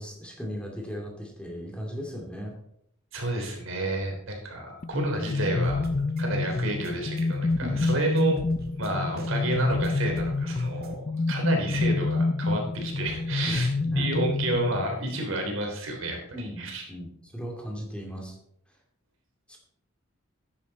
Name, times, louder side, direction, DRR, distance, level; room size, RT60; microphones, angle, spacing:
voice 1, 0.0-2.6 7.6-8.0 13.5-14.1 16.3-18.4 19.5-19.6, equal, 5° left, 0 dB, 2.4 m, -37 dB
voice 2, 3.1-8.4 8.8-13.7 14.0-16.8, right 2 dB, 70° right, 1 dB, 3.5 m, -30 dB
sound 1, 4.8-15.3, left 3 dB, 35° left, 0.4 m, -28 dB
sound 2, 5.6-10.9, right 1 dB, 45° right, 1.9 m, -45 dB
13.5 x 9.8 x 4.2 m, 0.74 s
head